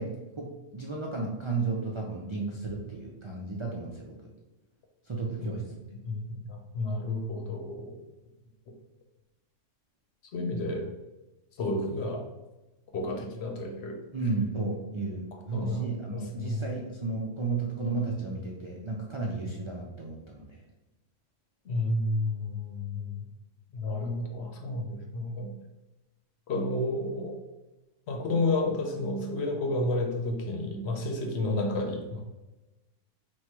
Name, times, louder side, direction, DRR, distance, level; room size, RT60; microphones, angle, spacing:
voice 1, 0.0-4.2 5.1-5.7 14.1-20.6, right 3 dB, 50° right, -2 dB, 0.3 m, -33 dB
voice 2, 5.9-8.0 10.3-10.9 11.6-12.3 12.9-14.0 15.5-16.7 21.6-23.3 23.7-25.6 26.5-27.4 28.1-32.2, left 2 dB, 60° left, 3 dB, 0.9 m, -31 dB
4.2 x 2.3 x 4.6 m, 1.1 s
omnidirectional pair, 1.3 m